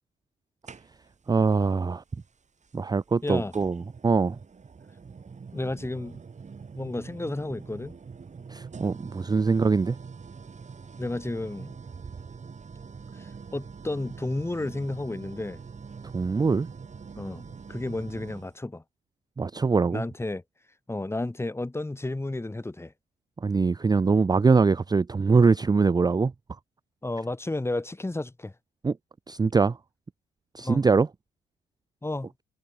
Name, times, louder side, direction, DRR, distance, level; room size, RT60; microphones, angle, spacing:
sound 1, 0.7-1.3 2.6-2.7 3.5-18.5, right 5 dB, 35° right, 5.1 m, -44 dB
voice 1, 1.3-2.0 2.7-4.4 8.5-10.0 16.1-16.7 19.4-20.0 23.4-26.3 28.8-29.0 29.3-29.8 30.5-31.1, right 4 dB, 20° right, 0.6 m, -23 dB
voice 2, 3.2-3.5 5.5-6.2 6.8-8.0 11.0-11.7 13.1-15.6 17.2-18.8 19.9-20.4 20.9-22.9 27.0-28.5 30.6-30.8 32.0-32.3, left 2 dB, 10° left, 1.9 m, -32 dB
cardioid pair, 90°, 20 cm